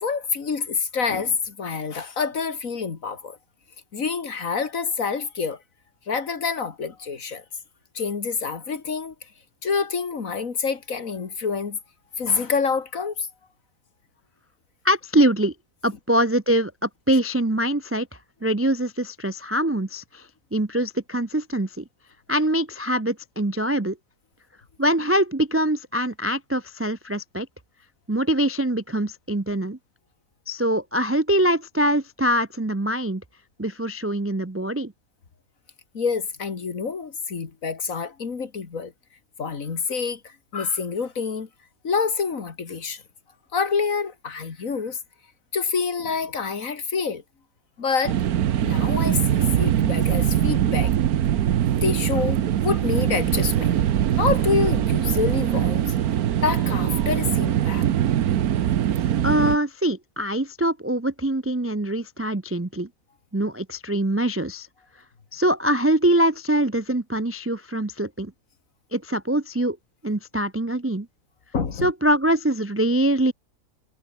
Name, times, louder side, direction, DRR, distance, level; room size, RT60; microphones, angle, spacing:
voice 1, 0.0-3.4 3.9-5.6 6.1-7.4 7.9-9.1 9.6-11.8 12.2-13.3 35.9-38.9 39.4-41.5 41.8-43.0 43.5-45.0 45.5-47.2 47.8-48.2 48.6-50.9 51.7-53.7 54.1-55.9 56.4-57.9 71.5-71.9, left 5 dB, 65° left, 2.4 m, -27 dB
voice 2, 14.8-15.5 15.8-18.1 18.4-21.8 22.3-24.0 24.8-27.5 28.1-29.8 30.5-33.2 33.6-34.9 59.2-62.9 63.3-64.7 65.3-68.3 68.9-69.8 70.0-71.1 71.8-73.3, right 1 dB, 20° right, 0.4 m, -23 dB
sound 1, 48.1-59.6, right 10 dB, 90° right, 1.4 m, -22 dB
omnidirectional pair, 1.5 m